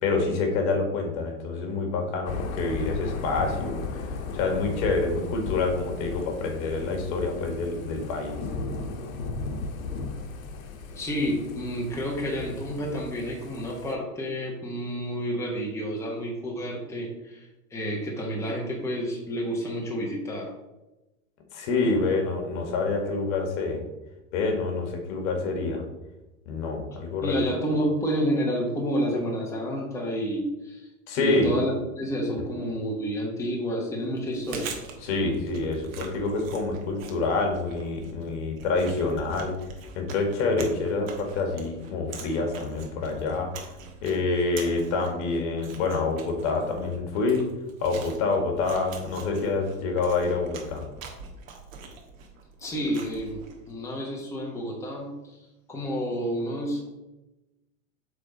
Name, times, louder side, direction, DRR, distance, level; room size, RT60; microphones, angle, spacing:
voice 1, 0.0-3.8 4.3-8.4 21.5-23.8 24.3-25.8 26.4-27.4 31.1-31.5 35.0-39.5 39.9-43.5 44.0-47.4 47.8-50.8, left 3 dB, 55° left, 3 dB, 1.7 m, -27 dB
Thunder / Rain, 2.2-13.9, left 3 dB, 75° left, 1.1 m, -35 dB
voice 2, 10.9-20.5 27.2-30.9 31.2-34.7 52.6-55.4 55.7-56.9, equal, 5° left, -2 dB, 1.1 m, -30 dB
Chewing mastication, 34.2-53.7, right 5 dB, 75° right, 1.5 m, -44 dB
7.5 x 3.8 x 4.0 m, 1.0 s
supercardioid pair, 130°, 41 cm